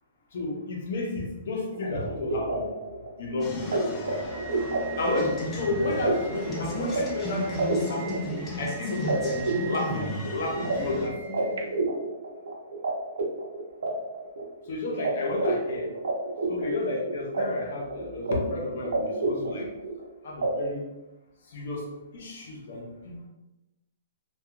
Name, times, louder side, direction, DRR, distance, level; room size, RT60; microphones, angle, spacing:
voice 1, 0.3-2.7 3.2-3.8 5.0-8.2 8.6-9.4 9.6-11.6 14.7-15.9 16.5-19.7 20.2-20.8 21.5-21.9 22.1-23.3, left 2 dB, 60° left, -1 dB, 0.7 m, -31 dB
sound 1, 1.7-12.9 13.2-14.7 15.0-15.1 15.4-17.4 17.7-18.3 18.6-20.0 20.4-20.5, right 3 dB, 85° right, 0.6 m, -30 dB
sound 2, 3.4-11.1, left 1 dB, 15° left, 0.4 m, -35 dB
2.7 x 2.3 x 2.3 m, 0.99 s
hypercardioid pair, 160°, 0 cm